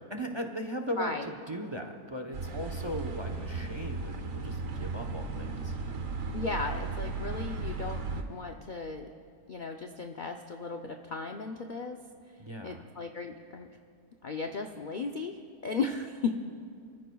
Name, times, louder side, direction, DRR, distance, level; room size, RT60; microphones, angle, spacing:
voice 1, 0.0-5.7 12.4-12.8 15.8-15.9, equal, 25° right, 4 dB, 0.6 m, -38 dB
voice 2, 1.0-1.3 6.3-8.0 8.3-9.1 9.5-12.0 12.6-13.7 14.2-16.4, left 4 dB, 75° left, 4 dB, 0.4 m, -35 dB
sound 1, 2.3-8.2, right 3 dB, 60° right, 1.4 m, -35 dB
29.5 x 14.0 x 2.3 m, 2.3 s
omnidirectional pair, 1.6 m